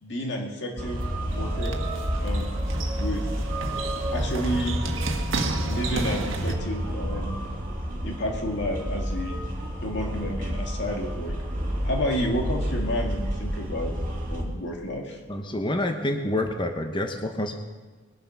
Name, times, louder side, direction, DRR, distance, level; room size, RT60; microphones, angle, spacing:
voice 1, 0.0-1.0 1.3-1.8 2.2-2.5 3.0-3.3 4.1-4.8 5.6-7.4 8.0-9.4 9.8-11.3 11.8-13.9 14.3-15.2, equal, 60° left, 1 dB, 2.1 m, -30 dB
sound 1, 0.8-14.4, equal, 45° right, 2.4 m, -30 dB
sound 2, 0.9-6.5, right 3 dB, 75° right, 1.4 m, -33 dB
voice 2, 15.3-17.6, left 1 dB, 25° left, 5 dB, 1.0 m, -27 dB
21.0 x 7.6 x 5.9 m, 1.3 s
head